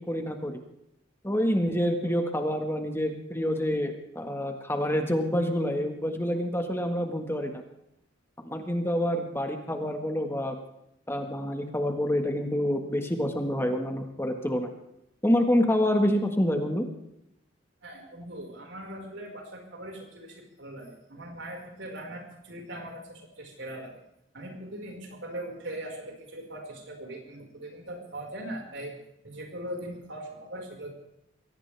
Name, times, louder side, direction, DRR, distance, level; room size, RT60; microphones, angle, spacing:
voice 1, 0.1-0.6 1.2-7.6 8.4-10.5 11.1-14.7 15.2-16.9, equal, 10° left, 4 dB, 1.6 m, -27 dB
voice 2, 17.8-24.0 24.3-28.9 29.2-30.9, right 1 dB, 70° right, 2 dB, 5.1 m, -40 dB
23.0 x 17.5 x 3.5 m, 0.80 s
head